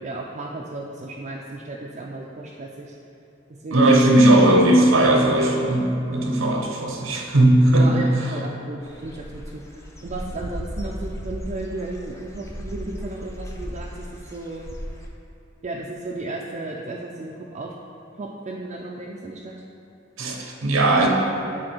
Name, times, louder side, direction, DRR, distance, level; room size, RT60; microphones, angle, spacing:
voice 1, 0.0-2.9 3.6-3.8 7.7-14.7 15.6-17.7 18.2-19.5, right 2 dB, 35° right, -2 dB, 0.4 m, -34 dB
voice 2, 3.7-8.1 20.2-21.1, right 1 dB, 85° right, 0 dB, 0.9 m, -17 dB
Dog / Bird, 8.8-15.1, equal, 15° left, 0.5 m, -36 dB
7.6 x 4.0 x 4.4 m, 2.8 s
head